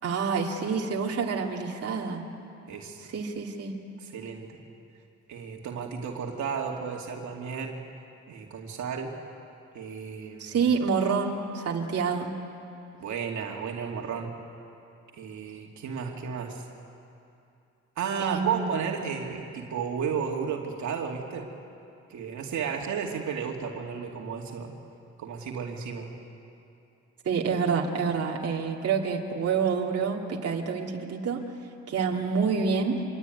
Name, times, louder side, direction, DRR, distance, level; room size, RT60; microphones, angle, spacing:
voice 1, 0.0-2.2 3.1-3.7 10.4-12.3 18.2-18.9 27.2-31.4 31.9-33.0, right 5 dB, 50° right, -1 dB, 2.6 m, -28 dB
voice 2, 2.7-3.1 4.0-4.6 5.3-7.8 8.3-9.1 9.7-10.6 13.0-14.3 15.1-16.6 18.0-21.5 22.1-24.7 25.2-26.1, right 6 dB, 70° right, 1 dB, 2.7 m, -33 dB
26.0 x 22.0 x 9.4 m, 2.7 s
cardioid pair, 90°, 30 cm